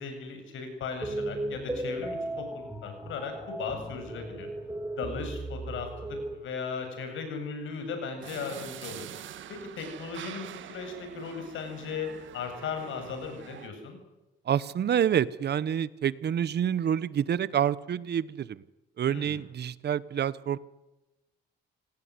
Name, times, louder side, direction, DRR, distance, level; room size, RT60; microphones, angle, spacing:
voice 1, 0.0-4.5 5.0-9.0 9.5-12.1 12.3-14.0 19.1-19.4, left 5 dB, 80° left, 6 dB, 7.7 m, -37 dB
sound 1, 1.0-6.3, right 1 dB, 10° right, 3.9 m, -36 dB
sound 2, 8.2-13.7, right 11 dB, 75° right, 1.7 m, -45 dB
voice 2, 14.5-18.6 19.0-20.6, right 9 dB, 55° right, 18 dB, 1.1 m, -28 dB
27.5 x 18.0 x 9.8 m, 1.0 s
cardioid pair, 90°, 20 cm